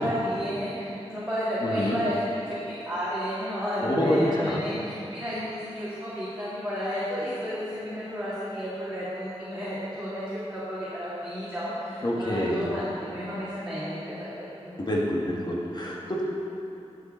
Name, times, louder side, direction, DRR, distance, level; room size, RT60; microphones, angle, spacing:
voice 1, 0.0-2.2 2.7-14.8, equal, 10° right, -12 dB, 2.4 m, -32 dB
voice 2, 1.6-2.0 3.8-4.6 12.0-12.7 14.8-16.2, equal, 40° left, -3 dB, 1.7 m, -26 dB
11.0 x 6.6 x 4.4 m, 3.0 s
wide cardioid pair, 75°, 11 cm